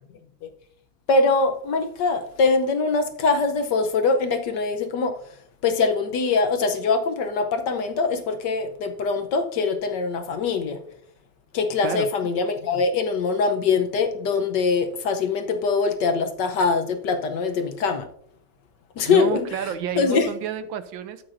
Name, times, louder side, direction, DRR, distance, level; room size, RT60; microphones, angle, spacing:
voice 1, 1.1-5.2 5.6-10.8 11.5-18.1 19.0-19.4 20.0-20.3, left 4 dB, 65° left, 1.3 m, -23 dB
voice 2, 19.0-21.3, right 9 dB, 75° right, 1.3 m, -30 dB
13.0 x 8.6 x 2.6 m
omnidirectional pair, 2.3 m